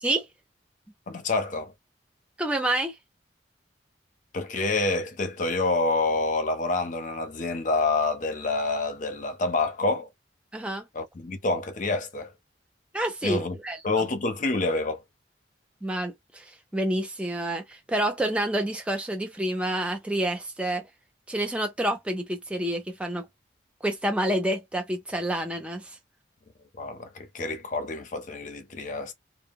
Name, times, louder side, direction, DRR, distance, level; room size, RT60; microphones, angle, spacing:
voice 1, 1.1-1.7 4.3-10.1 10.9-12.3 13.2-13.6 13.8-15.0 26.8-29.1, left 3 dB, 45° left, 0.6 m, -27 dB
voice 2, 2.4-2.9 10.5-10.8 12.9-13.8 15.8-20.8 21.3-23.3 23.8-26.0, right 1 dB, 5° right, 0.4 m, -28 dB
2.0 x 2.0 x 3.4 m
head